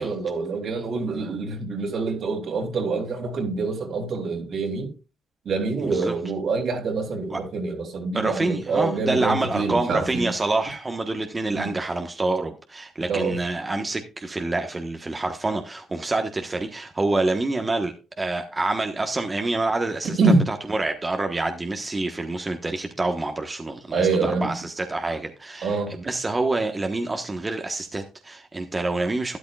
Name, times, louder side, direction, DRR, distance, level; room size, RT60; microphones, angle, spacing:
voice 1, 0.0-4.9 5.4-10.3 11.5-11.7 13.1-13.4 20.2-20.4 23.9-24.4 25.6-25.9, right 3 dB, 60° right, 3.1 m, -25 dB
voice 2, 5.8-6.1 7.3-7.4 8.1-29.4, right 2 dB, 25° right, 1.2 m, -27 dB
12.5 x 10.5 x 2.4 m
cardioid pair, 90°, 0 cm